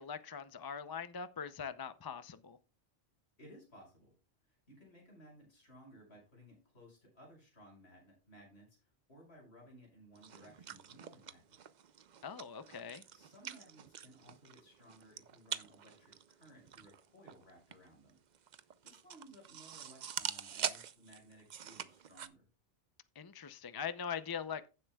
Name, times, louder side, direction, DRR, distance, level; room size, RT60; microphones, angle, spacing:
voice 1, 0.0-2.6 12.2-13.0 23.2-24.7, left 7 dB, 35° left, 0.4 m, -42 dB
voice 2, 3.4-4.1 4.4-11.6 13.1-18.2 18.8-22.4, equal, 65° left, 5.8 m, -59 dB
sound 1, 10.2-22.3, right 8 dB, 50° right, 0.6 m, -45 dB
15.5 x 7.6 x 2.3 m
omnidirectional pair, 1.2 m